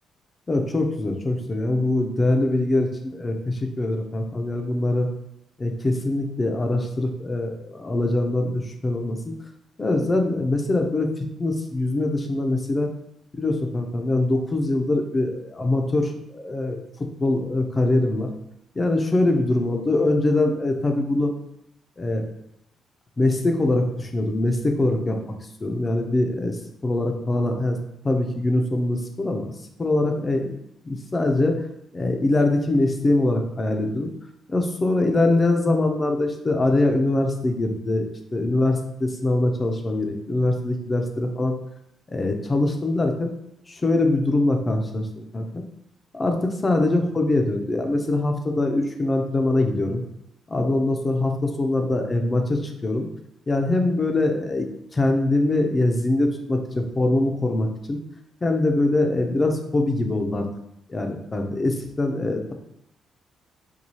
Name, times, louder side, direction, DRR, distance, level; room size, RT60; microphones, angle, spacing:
voice 1, 0.5-5.1 5.6-9.4 9.8-12.9 13.3-16.8 17.2-18.3 18.8-21.3 22.0-22.2 23.2-25.3 25.6-27.8 28.0-29.5 29.8-30.5 30.8-31.6 31.9-34.1 34.5-41.5 42.1-43.3 43.7-45.6 46.1-50.0 50.5-53.1 53.5-54.7 54.9-58.0 58.4-60.5 60.9-62.5, left 2 dB, 25° left, 4 dB, 0.6 m, -23 dB
4.5 x 2.3 x 2.7 m, 0.78 s
cardioid pair, 90°, 0 cm